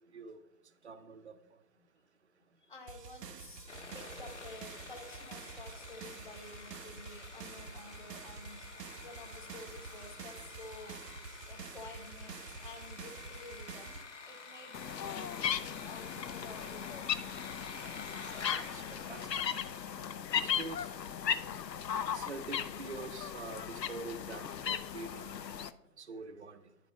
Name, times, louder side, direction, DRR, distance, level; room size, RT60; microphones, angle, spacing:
voice 1, 0.8-1.4 18.5-19.3 20.3-20.9 22.1-25.4 26.0-26.6, right 3 dB, 45° right, 9 dB, 0.6 m, -45 dB
voice 2, 2.6-17.0, left 2 dB, 30° left, 4 dB, 0.8 m, -52 dB
sound 1, 2.9-14.0, right 5 dB, 80° right, 0.9 m, -48 dB
Sawing, 3.7-20.1, left 4 dB, 45° left, 1.2 m, -49 dB
sound 2, 14.7-25.7, left 8 dB, 85° left, 0.7 m, -37 dB
11.0 x 4.1 x 4.9 m, 0.81 s
figure-of-eight pair, 165°, 49 cm